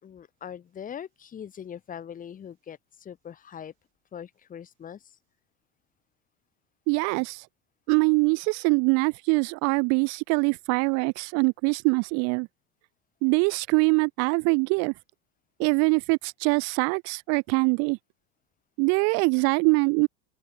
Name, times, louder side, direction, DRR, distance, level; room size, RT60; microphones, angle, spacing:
voice 1, 0.0-3.7 4.1-5.1, left 8 dB, 25° left, 5.3 m, -41 dB
voice 2, 6.9-7.5 7.9-12.5 13.2-14.9 15.6-18.0 18.8-20.1, right 33 dB, 50° right, 0.8 m, -23 dB
open air
supercardioid pair, 150°, 32 cm